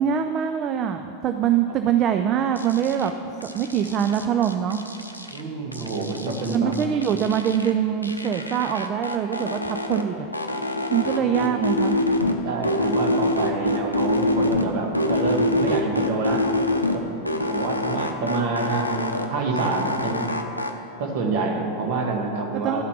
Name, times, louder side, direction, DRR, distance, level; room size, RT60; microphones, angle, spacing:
voice 1, 0.0-3.1 3.4-4.8 6.5-10.3 10.9-12.0 22.5-22.8, right 9 dB, 30° right, 7 dB, 0.4 m, -23 dB
sound 1, 2.6-3.1 3.4-5.4 5.7-7.7 8.0-10.0 10.3-12.3 12.6-14.7 14.9-17.0 17.2-19.3 19.6-20.7, left 1 dB, 85° left, 0.6 m, -25 dB
voice 2, 5.3-6.7 11.0-11.6 12.4-16.5 16.9-20.3 21.0-22.8, right 3 dB, 50° right, 2 dB, 1.5 m, -27 dB
12.0 x 5.8 x 6.1 m, 2.7 s
figure-of-eight pair, 90°, 0 cm